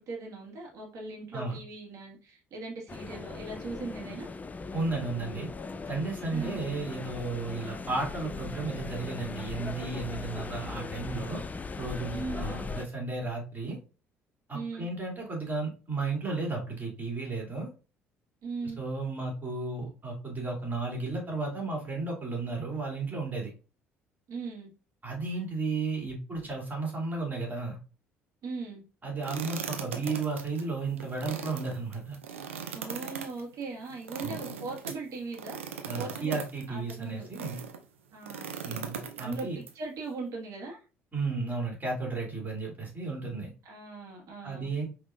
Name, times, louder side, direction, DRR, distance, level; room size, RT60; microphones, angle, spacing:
voice 1, 0.0-4.3 6.3-6.6 12.1-12.5 14.5-14.9 18.4-18.8 24.3-24.7 28.4-28.8 32.7-35.7 36.0-37.3 38.1-38.9 39.2-40.8 43.6-44.7, right 3 dB, 55° right, -1 dB, 1.6 m, -39 dB
sound 1, 2.9-12.9, left 4 dB, 25° left, 0.4 m, -39 dB
voice 2, 4.7-5.5 5.9-11.4 11.8-13.8 14.5-17.7 18.8-23.5 25.0-27.8 29.0-32.1 34.2-34.4 35.9-37.5 38.6-39.6 41.1-43.5 44.4-44.8, right 3 dB, 25° right, -1 dB, 2.3 m, -33 dB
sound 2, 29.2-37.8 38.2-39.7, right 6 dB, 85° right, 0.5 m, -39 dB
5.2 x 3.0 x 2.4 m, 0.34 s
hypercardioid pair, 55°, 7 cm